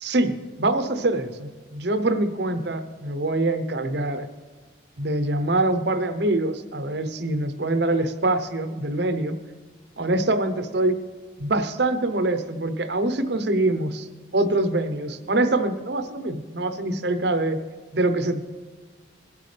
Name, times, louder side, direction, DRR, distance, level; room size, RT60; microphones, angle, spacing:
voice 1, 0.0-4.3 5.0-9.4 10.0-11.0 11.4-14.1 14.3-17.6 17.9-18.4, right 2 dB, 60° right, 9 dB, 0.9 m, -24 dB
22.0 x 8.5 x 3.4 m, 1.4 s
head